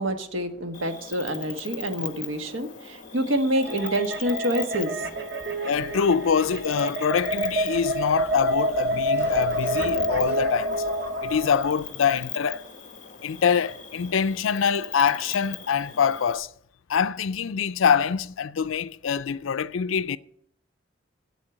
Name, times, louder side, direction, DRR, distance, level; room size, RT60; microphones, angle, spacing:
voice 1, 0.0-5.0, right 1 dB, 85° right, 1.4 m, -27 dB
Cricket, 0.7-16.3, left 9 dB, 40° left, 1.5 m, -40 dB
sound 1, 3.5-11.7, equal, 55° right, 1.5 m, -28 dB
voice 2, 5.7-10.8 11.2-12.6 13.2-16.5 16.9-20.2, left 6 dB, 90° left, 0.5 m, -24 dB
sound 2, 7.1-12.3, left 2 dB, 10° left, 4.6 m, -45 dB
8.4 x 8.3 x 9.0 m
head